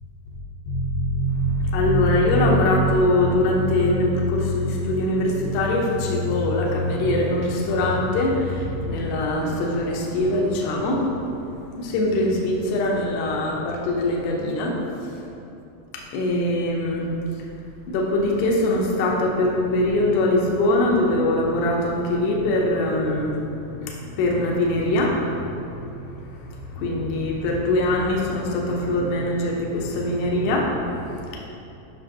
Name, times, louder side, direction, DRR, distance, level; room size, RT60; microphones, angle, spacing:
voice 1, 0.7-11.1 11.8-15.3 15.9-17.1 17.4-17.5 17.9-31.5, left 1 dB, 90° left, -2 dB, 2.3 m, -22 dB
10.0 x 6.1 x 2.9 m, 2.8 s
omnidirectional pair, 6.0 m